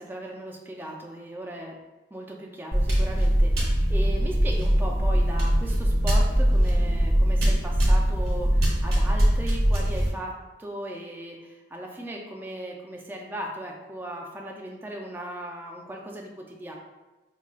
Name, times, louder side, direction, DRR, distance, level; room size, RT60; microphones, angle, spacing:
voice 1, 0.0-1.8 2.1-16.7, right 1 dB, 10° right, -1 dB, 0.4 m, -37 dB
sound 1, 2.7-10.1, equal, 65° right, 1.0 m, -22 dB
4.9 x 2.3 x 2.4 m, 1.1 s
head